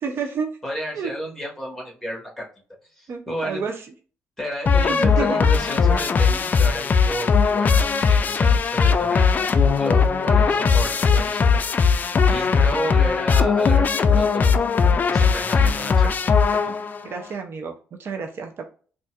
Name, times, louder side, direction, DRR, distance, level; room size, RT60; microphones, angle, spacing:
voice 1, 0.0-0.6 0.9-1.1 3.1-3.9 4.9-5.4 12.4-12.7 17.0-18.7, right 5 dB, 55° right, 4 dB, 0.5 m, -30 dB
voice 2, 0.6-2.5 3.0-3.6 4.4-11.7 12.3-13.8 14.1-16.1 16.6-16.8, equal, 5° left, -2 dB, 1.4 m, -32 dB
sound 1, 4.7-17.1, left 5 dB, 35° left, 0.3 m, -19 dB
4.0 x 2.4 x 2.3 m, 0.40 s
cardioid pair, 110°, 5 cm